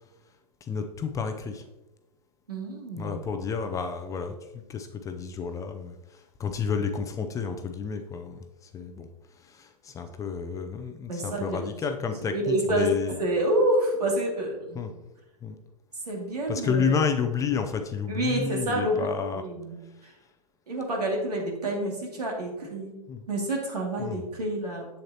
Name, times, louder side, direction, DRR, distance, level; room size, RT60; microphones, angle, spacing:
voice 1, 0.7-1.6 3.0-4.3 4.7-8.4 8.7-9.1 9.4-13.1 14.7-14.9 15.4-15.6 16.5-19.4 23.1-23.2 24.0-24.2, left 6 dB, 15° left, 7 dB, 0.5 m, -30 dB
voice 2, 2.5-3.1 11.1-11.6 12.2-14.8 16.1-16.9 18.1-19.8 20.0-20.1 20.7-22.9 23.3-24.9, right 1 dB, 80° right, -1 dB, 2.3 m, -28 dB
7.8 x 7.5 x 2.8 m, 0.99 s
figure-of-eight pair, 110°, 20 cm